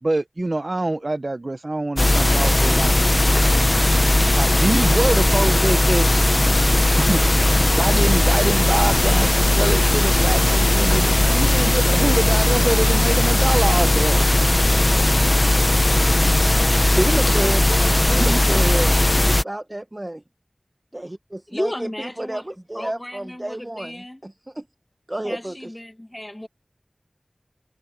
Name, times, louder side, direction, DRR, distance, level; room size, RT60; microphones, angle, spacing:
voice 1, 0.0-3.4 4.4-6.1 7.0-7.2 7.8-14.4 18.1-18.4, right 2 dB, 55° right, 0.7 m, -25 dB
sound 1, 2.0-19.4, left 1 dB, 40° left, 0.7 m, -17 dB
sound 2, 3.3-14.4, equal, ahead, 3.8 m, -45 dB
voice 2, 16.8-20.2 20.9-23.9 24.2-24.6 25.1-25.7, right 1 dB, 30° right, 1.1 m, -30 dB
voice 3, 21.5-22.5 22.7-24.2 25.2-26.5, left 1 dB, 20° left, 1.5 m, -33 dB
wide cardioid pair, 55°, 0 cm